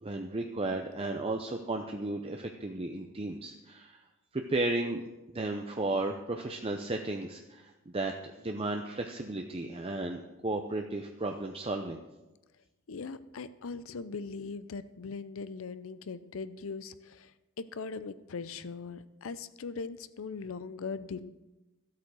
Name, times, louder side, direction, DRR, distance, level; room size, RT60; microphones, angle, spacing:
voice 1, 0.0-4.0 4.3-12.0, right 2 dB, 30° right, 4 dB, 0.7 m, -34 dB
voice 2, 12.9-21.5, left 4 dB, 80° left, 14 dB, 0.6 m, -40 dB
13.0 x 8.3 x 6.2 m, 1.1 s
head